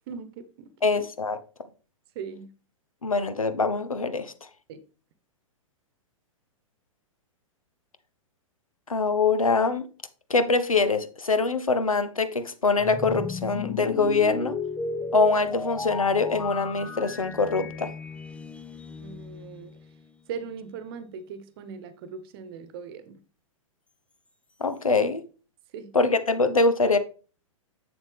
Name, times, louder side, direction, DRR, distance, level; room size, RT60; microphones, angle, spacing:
voice 1, 0.1-1.0 2.1-2.5 4.7-4.8 19.0-19.8 20.3-23.2 25.7-25.9, right 6 dB, 45° right, 1.1 m, -39 dB
voice 2, 0.8-1.4 3.0-4.3 8.9-9.9 10.3-14.6 15.1-17.9 24.6-25.2 25.9-27.0, left 4 dB, 85° left, 0.9 m, -24 dB
sound 1, 12.8-20.0, left 4 dB, 5° left, 0.5 m, -35 dB
7.3 x 7.0 x 3.4 m
figure-of-eight pair, 110°, 17 cm